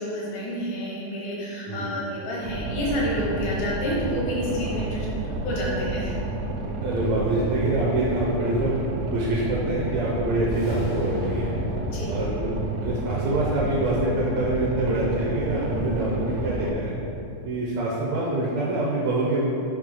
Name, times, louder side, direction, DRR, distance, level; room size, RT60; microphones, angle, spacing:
voice 1, 0.0-5.1 5.4-6.2 11.6-12.2, equal, 70° left, -5 dB, 1.0 m, -29 dB
voice 2, 1.7-2.0 6.8-8.8 9.1-11.5 12.1-12.5 12.8-17.0 17.5-19.4, right 2 dB, 70° right, -4 dB, 1.8 m, -25 dB
Boat Water vehicle, 2.4-16.7, right 2 dB, 90° right, 1.5 m, -30 dB
sound 1, 10.4-14.8, left 2 dB, 90° left, 2.2 m, -38 dB
6.7 x 2.8 x 5.3 m, 2.8 s
omnidirectional pair, 3.6 m